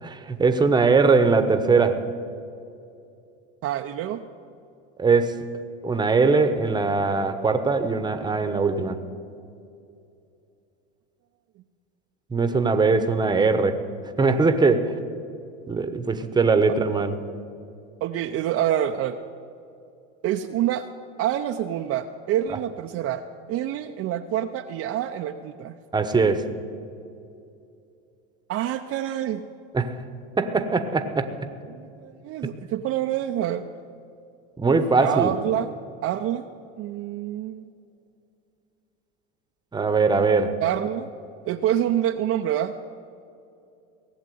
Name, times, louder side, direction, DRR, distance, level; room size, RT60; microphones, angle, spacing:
voice 1, 0.0-2.0 5.0-5.4 5.8-9.0 12.3-13.8 14.2-14.9 15.7-17.1 25.9-26.5 29.7-30.0 30.4-31.3 34.6-35.3 39.7-40.6, right 4 dB, 10° right, 9 dB, 1.0 m, -21 dB
voice 2, 3.6-4.2 18.0-19.2 20.2-20.8 21.2-23.2 23.5-25.8 28.5-29.4 31.7-33.7 35.0-35.7 36.0-36.5 36.8-37.7 40.6-41.1 41.4-42.7, right 11 dB, 40° right, 5 dB, 0.7 m, -26 dB
18.0 x 7.4 x 9.3 m, 2.6 s
hypercardioid pair, 105°, 35 cm